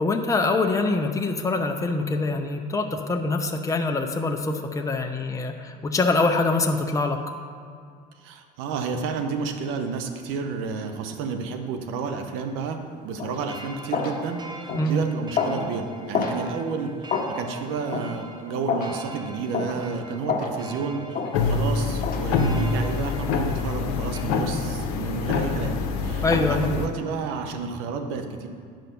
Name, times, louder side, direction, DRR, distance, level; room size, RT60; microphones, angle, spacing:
voice 1, 0.0-7.2 14.8-15.0 26.2-26.6, left 3 dB, 15° left, 3 dB, 0.8 m, -24 dB
voice 2, 8.2-28.5, right 5 dB, 70° right, 6 dB, 1.0 m, -31 dB
sound 1, 13.2-13.3 13.9-14.2 14.7-14.9 15.3-15.6 16.1-16.4 17.1-17.3 17.9-18.1 18.7-18.9 19.5-19.8 20.3-20.5 21.1-21.3 22.0-22.2, left 5 dB, 45° left, 1.5 m, -27 dB
sound 2, 13.3-24.2, right 2 dB, 20° right, 1.0 m, -43 dB
sound 3, 21.3-26.9, left 4 dB, 75° left, 0.9 m, -25 dB
9.2 x 5.7 x 5.3 m, 2.2 s
supercardioid pair, 80°, 21 cm